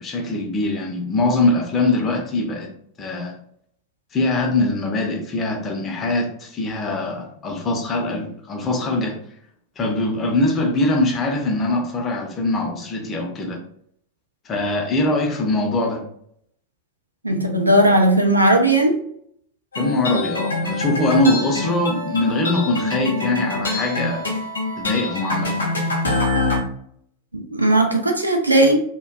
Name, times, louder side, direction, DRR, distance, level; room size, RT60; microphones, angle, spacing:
voice 1, 0.0-2.7 3.0-3.3 4.1-9.2 9.8-13.6 14.5-16.0 19.8-24.3 24.8-25.7, left 2 dB, 25° left, 2 dB, 0.6 m, -22 dB
voice 2, 17.2-19.0 27.3-28.8, right 1 dB, 85° right, 3 dB, 0.4 m, -17 dB
sound 1, 19.7-26.6, left 2 dB, 75° left, 0.5 m, -25 dB
2.5 x 2.1 x 2.3 m, 0.67 s
figure-of-eight pair, 90°, 0 cm